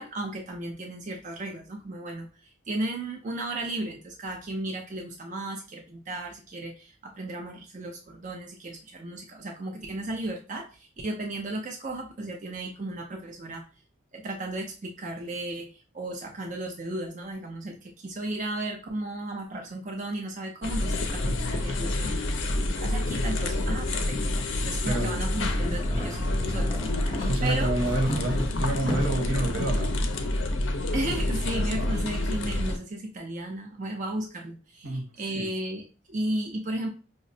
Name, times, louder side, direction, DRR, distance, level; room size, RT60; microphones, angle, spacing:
voice 1, 0.0-2.3 2.7-13.6 14.1-22.3 22.8-26.9 27.4-27.8 30.9-36.9, right 1 dB, 35° right, 1 dB, 0.4 m, -35 dB
sound 1, 20.6-32.8, left 1 dB, 60° left, 0.5 m, -28 dB
sound 2, 25.3-29.3, equal, 20° left, 0.7 m, -34 dB
voice 2, 27.3-30.0 34.8-35.1 35.3-35.5, right 1 dB, 90° right, 1 dB, 1.0 m, -28 dB
5.0 x 2.0 x 2.6 m, 0.34 s
head